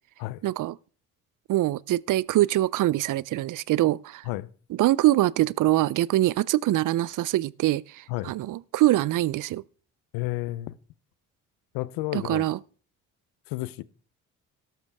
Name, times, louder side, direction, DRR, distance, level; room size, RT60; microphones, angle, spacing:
voice 1, 0.4-0.8 1.5-4.2 4.7-9.6 12.1-12.6, right 15 dB, 60° right, 0.6 m, -24 dB
voice 2, 10.1-10.8 11.7-12.4 13.5-13.8, left 18 dB, 85° left, 0.7 m, -31 dB
13.0 x 12.0 x 3.5 m
supercardioid pair, 55°, 35 cm